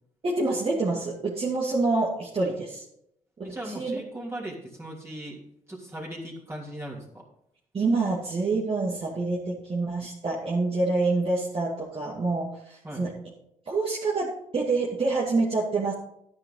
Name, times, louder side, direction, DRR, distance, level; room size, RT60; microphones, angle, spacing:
voice 1, 0.2-2.8 3.4-4.0 7.7-13.2 13.7-15.9, right 3 dB, 45° right, -5 dB, 2.4 m, -27 dB
voice 2, 3.4-5.4 5.7-7.0 12.8-13.0, right 1 dB, 20° right, -4 dB, 3.3 m, -38 dB
11.0 x 9.9 x 3.9 m, 0.76 s
cardioid pair, 80°, 14 cm